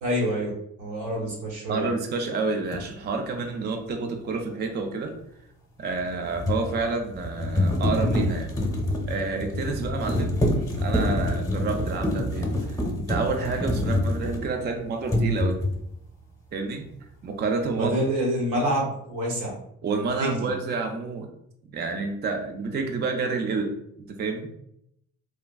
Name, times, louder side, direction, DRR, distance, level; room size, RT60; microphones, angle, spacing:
voice 1, 0.0-1.9 17.8-19.5 20.2-20.3, right 1 dB, 85° right, -2 dB, 1.1 m, -27 dB
voice 2, 1.7-5.1 5.8-8.5 9.1-15.6 16.5-16.8 17.2-18.0 19.8-21.3 21.6-24.5, right 4 dB, 35° right, 4 dB, 0.4 m, -29 dB
sound 1, 2.7-2.9 5.9-14.7 15.0-15.9, left 1 dB, 10° left, 0.8 m, -26 dB
3.2 x 2.2 x 2.2 m, 0.74 s
cardioid pair, 90°, 30 cm